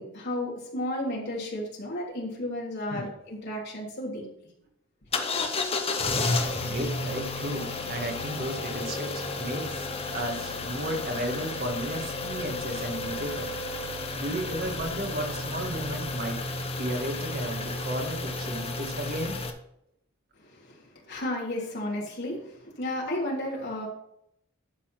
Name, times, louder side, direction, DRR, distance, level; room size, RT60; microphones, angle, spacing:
voice 1, 0.0-4.3 20.4-23.9, left 1 dB, 55° left, -3 dB, 3.1 m, -33 dB
sound 1, 5.1-19.5, left 3 dB, 30° left, 0.9 m, -32 dB
voice 2, 6.6-9.9 10.1-13.5 14.1-16.4 16.8-19.4, right 1 dB, 50° right, 3 dB, 1.8 m, -34 dB
11.5 x 4.2 x 5.9 m, 0.78 s
head